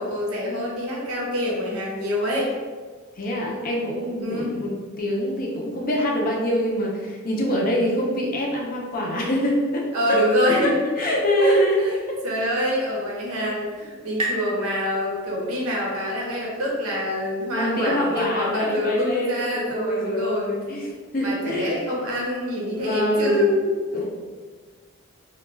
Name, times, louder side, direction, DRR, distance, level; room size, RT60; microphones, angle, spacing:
voice 1, 0.0-2.5 4.2-4.6 9.9-10.8 11.1-20.5 21.2-23.7, equal, 70° right, -3 dB, 0.7 m, -25 dB
voice 2, 3.2-4.7 5.0-10.2 10.5-10.7 11.0-11.8 12.1-12.2 17.5-21.8 22.8-23.5 23.9-24.0, equal, 40° left, -1 dB, 0.5 m, -25 dB
sound 1, 12.7-16.1, right 1 dB, 25° right, 0.5 m, -35 dB
2.2 x 2.2 x 3.2 m, 1.5 s
head